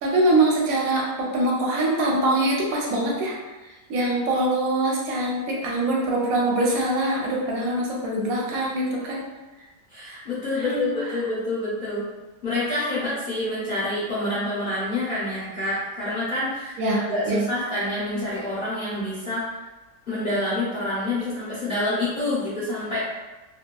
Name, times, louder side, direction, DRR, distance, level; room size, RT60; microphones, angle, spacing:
voice 1, 0.0-3.4 3.9-9.2 10.5-11.2 16.8-17.4, right 2 dB, 65° right, -3 dB, 1.0 m, -23 dB
voice 2, 9.9-12.1 12.4-19.5 20.1-23.0, left 1 dB, 50° left, -10 dB, 0.6 m, -27 dB
2.8 x 2.2 x 2.2 m, 1.1 s
omnidirectional pair, 1.8 m